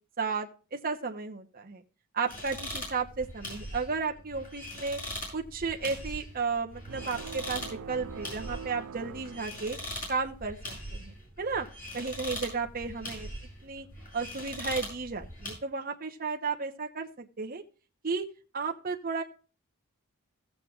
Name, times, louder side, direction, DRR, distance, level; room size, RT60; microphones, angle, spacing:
voice 1, 0.2-1.8 2.1-5.0 5.3-9.8 10.1-11.7 11.9-13.3 13.6-13.9 14.1-17.6 18.0-18.2 18.5-19.2, right 4 dB, 45° right, 3 dB, 1.1 m, -33 dB
sound 1, 2.3-15.5, left 1 dB, 40° left, 6.3 m, -41 dB
sound 2, 6.9-10.2, right 6 dB, 75° right, 0.4 m, -44 dB
16.5 x 7.6 x 2.4 m, 0.36 s
head